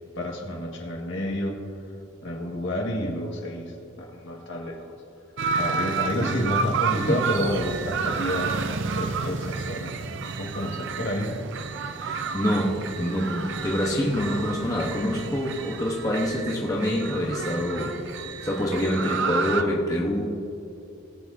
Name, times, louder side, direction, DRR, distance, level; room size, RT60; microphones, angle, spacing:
voice 1, 0.2-1.6 2.2-4.9 5.6-9.9 10.4-11.3, equal, 60° left, -1 dB, 1.9 m, -30 dB
sound 1, 5.4-19.6, right 5 dB, 60° right, 0.6 m, -30 dB
voice 2, 7.0-7.3 12.0-18.0 18.4-20.3, left 1 dB, 15° left, -3 dB, 1.1 m, -26 dB
21.0 x 8.1 x 2.8 m, 2.6 s
head